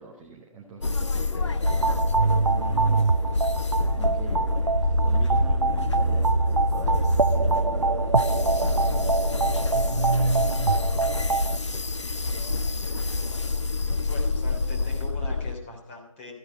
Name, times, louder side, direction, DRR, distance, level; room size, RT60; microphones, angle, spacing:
voice 1, 0.0-3.5 3.9-10.8, right 3 dB, 5° right, -1 dB, 0.6 m, -44 dB
sound 1, 0.8-15.5, left 3 dB, 60° left, 1.0 m, -27 dB
sound 2, 1.6-11.6, right 3 dB, 90° right, 0.5 m, -24 dB
voice 2, 12.4-13.5 14.1-16.3, left 2 dB, 20° left, 0 dB, 3.2 m, -42 dB
14.0 x 9.9 x 5.4 m, 0.75 s
figure-of-eight pair, 150°, 17 cm